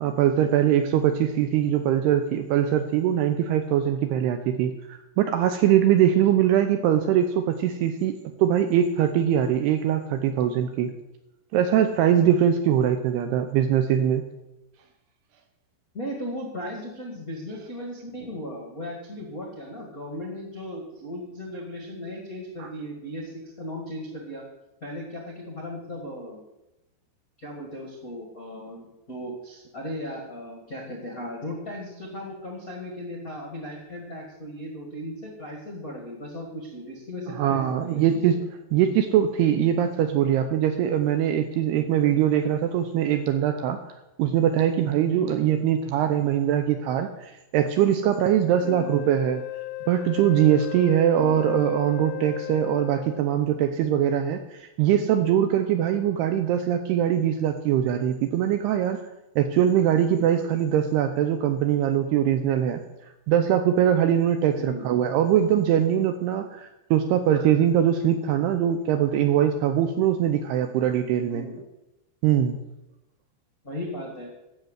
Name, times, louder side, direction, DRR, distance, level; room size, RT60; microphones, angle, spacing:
voice 1, 0.0-10.9 11.5-14.2 22.6-22.7 37.4-38.4 38.7-43.8 44.2-49.4 49.9-59.0 59.4-62.8 63.3-71.5 72.2-72.5, right 10 dB, 80° right, 8 dB, 2.4 m, -22 dB
voice 2, 15.9-24.4 24.8-26.4 27.4-38.3 41.8-41.9 48.6-48.9 51.2-51.5 64.6-64.9 71.3-71.6 73.6-74.3, equal, 55° left, -1 dB, 0.9 m, -37 dB
Wind instrument woodwind instrument, 48.6-53.4, left 20 dB, 80° left, 2.6 m, -35 dB
12.0 x 7.4 x 8.0 m, 0.94 s
omnidirectional pair, 5.4 m